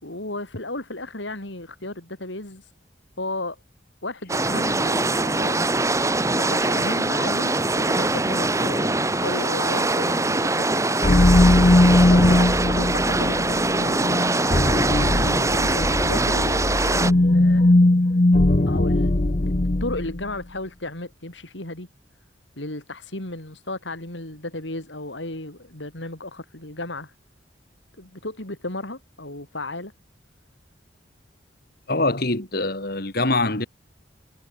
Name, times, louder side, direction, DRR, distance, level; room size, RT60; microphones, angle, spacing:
voice 1, 0.0-2.7 3.2-3.6 4.0-5.7 6.3-10.9 12.1-14.3 15.5-17.7 18.7-19.1 19.8-21.9 22.6-27.1 28.0-29.9, left 2 dB, 80° left, 5.2 m, -34 dB
sound 1, 4.3-17.1, right 2 dB, 15° right, 2.0 m, -23 dB
sound 2, 11.0-20.2, left 1 dB, 40° left, 0.9 m, -19 dB
voice 2, 31.9-33.7, left 2 dB, 55° left, 3.1 m, -24 dB
head